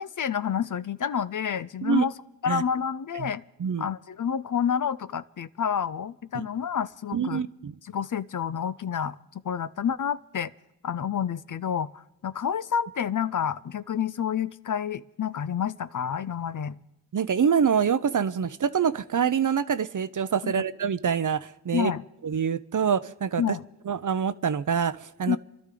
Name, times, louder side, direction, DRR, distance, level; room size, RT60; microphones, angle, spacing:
voice 1, 0.0-2.1 2.4-3.4 3.8-7.4 7.9-9.2 9.4-10.5 10.8-16.8 20.4-20.5 21.7-22.0 23.4-23.6 25.3-25.4, left 8 dB, 50° left, 15 dB, 0.6 m, -29 dB
voice 2, 7.1-7.7 17.1-21.9 22.2-23.6 23.9-25.4, right 7 dB, 50° right, 14 dB, 0.7 m, -25 dB
28.0 x 12.0 x 3.8 m, 0.90 s
cardioid pair, 40°, 42 cm